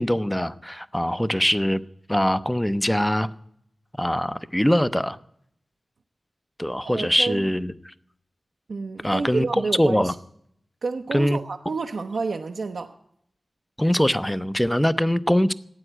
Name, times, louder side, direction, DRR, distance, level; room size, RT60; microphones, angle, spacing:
voice 1, 0.0-1.8 2.1-3.3 4.0-5.2 6.6-7.9 9.0-10.1 11.1-11.4 13.8-15.5, equal, 5° left, 0.5 m, -22 dB
voice 2, 6.8-7.5 8.7-10.1 10.8-12.9, right 4 dB, 80° right, 0.8 m, -29 dB
12.5 x 9.0 x 9.9 m
wide cardioid pair, 115°, 0 cm